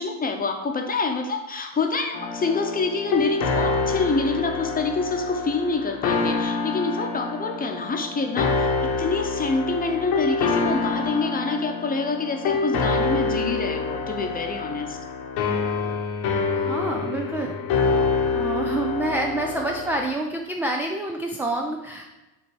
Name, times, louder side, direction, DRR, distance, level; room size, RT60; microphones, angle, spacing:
voice 1, 0.0-15.0, left 3 dB, 20° left, 4 dB, 0.9 m, -26 dB
sound 1, 2.1-20.1, left 4 dB, 65° left, 1.1 m, -26 dB
voice 2, 16.5-17.6 18.3-22.1, right 2 dB, 5° right, 1 dB, 0.4 m, -27 dB
7.4 x 2.8 x 4.6 m, 1.0 s
supercardioid pair, 95°, 42 cm